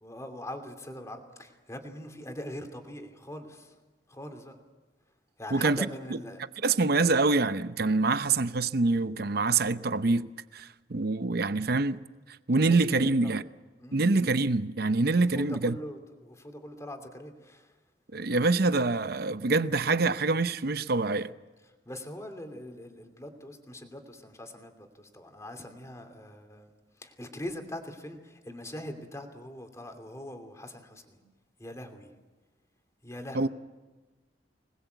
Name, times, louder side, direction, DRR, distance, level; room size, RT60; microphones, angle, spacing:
voice 1, 0.0-3.7 4.1-4.5 5.4-6.4 12.6-13.3 13.8-14.0 15.3-17.7 21.9-26.7 27.0-31.2 31.6-32.1 33.0-33.5, left 1 dB, 15° left, 2.8 m, -42 dB
voice 2, 6.6-10.3 10.5-12.0 12.5-13.4 13.9-15.8 18.1-21.3 33.3-33.5, right 3 dB, 60° right, 0.8 m, -25 dB
25.5 x 20.0 x 8.1 m
head